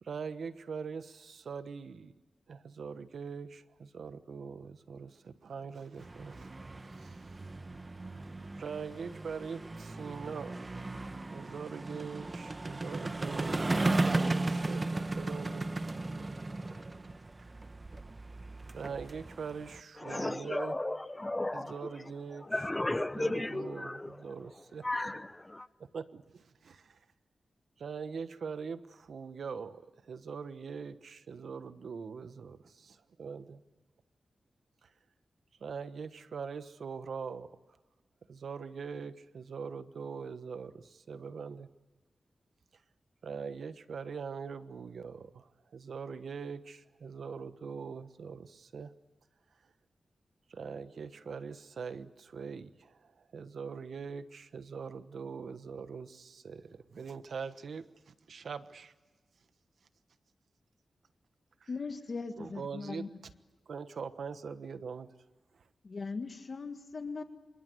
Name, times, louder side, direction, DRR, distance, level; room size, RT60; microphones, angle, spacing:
voice 1, 0.0-2.1 2.5-7.4 8.5-10.6 11.3-14.8 15.2-15.7 18.7-20.8 21.5-22.6 23.1-24.9 25.8-27.0 27.8-33.6 34.8-34.9 35.6-37.5 38.3-41.7 43.2-48.9 50.5-58.9 61.6-61.7 62.4-63.1 63.7-65.1, right 5 dB, 80° right, 1.2 m, -42 dB
sound 1, 6.0-19.8, right 2 dB, 35° right, 1.1 m, -36 dB
voice 2, 20.0-21.9 22.4-24.2 24.8-25.7, left 1 dB, 20° left, 1.1 m, -34 dB
voice 3, 61.7-63.1 65.8-67.2, left 4 dB, 55° left, 1.6 m, -39 dB
27.0 x 25.0 x 7.9 m
cardioid pair, 70°, 0 cm